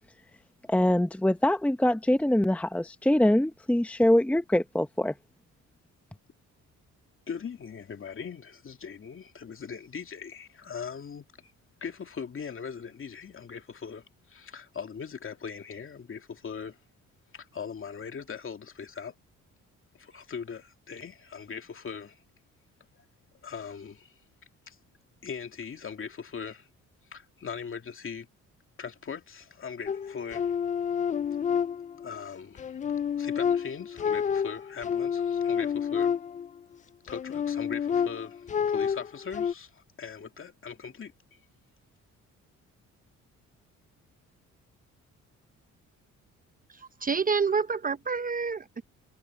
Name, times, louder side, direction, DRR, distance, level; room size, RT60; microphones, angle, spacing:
voice 1, 0.7-5.1, left 1 dB, 5° left, 0.9 m, -24 dB
voice 2, 7.3-11.5 11.8-16.8 17.3-19.1 20.0-22.2 23.4-24.1 24.7-24.8 25.2-26.7 27.1-28.3 28.8-30.5 32.0-32.7 33.2-36.1 37.0-41.4, left 6 dB, 45° left, 2.5 m, -40 dB
sound 1, 29.9-32.2 32.6-36.6 37.1-39.5, left 7 dB, 25° left, 0.3 m, -29 dB
voice 3, 46.7-48.8, right 5 dB, 30° right, 0.7 m, -28 dB
cardioid pair, 90°, 30 cm